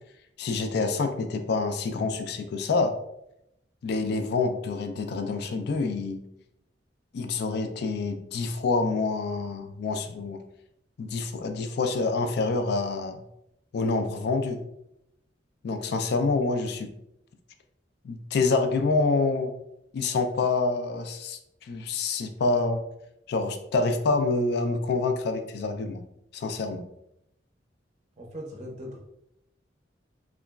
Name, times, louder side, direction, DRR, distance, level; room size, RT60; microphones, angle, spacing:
voice 1, 0.4-2.9 3.8-6.2 7.1-10.4 11.0-13.2 13.7-14.6 15.6-16.9 18.0-19.5 19.9-22.8 23.3-26.0 26.3-26.9, left 3 dB, 60° left, 7 dB, 0.3 m, -27 dB
voice 2, 28.2-29.0, equal, 40° right, 0 dB, 0.5 m, -39 dB
2.9 x 2.3 x 2.2 m, 0.81 s
head